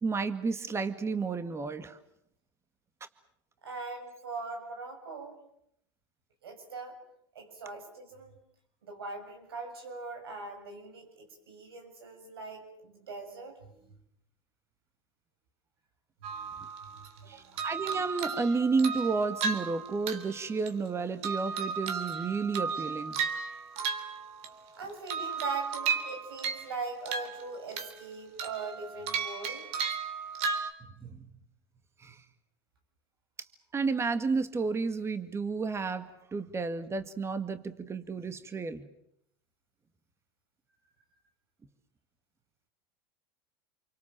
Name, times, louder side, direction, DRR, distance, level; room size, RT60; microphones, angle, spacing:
voice 1, 0.0-2.0 17.3-23.2 31.0-31.3 32.0-32.2 33.7-38.9, right 4 dB, 20° right, 10 dB, 1.9 m, -31 dB
voice 2, 3.6-5.4 6.4-7.0 7.4-8.4 8.8-13.9 16.3-17.7 24.8-29.7, right 4 dB, 90° right, 4 dB, 7.0 m, -41 dB
sound 1, 16.2-17.2 17.6-20.9 21.2-24.7 25.1-26.7 27.1-28.1 28.4-30.7, right 5 dB, 60° right, 3.6 m, -35 dB
29.0 x 24.0 x 7.5 m, 0.76 s
hypercardioid pair, 90°, 12 cm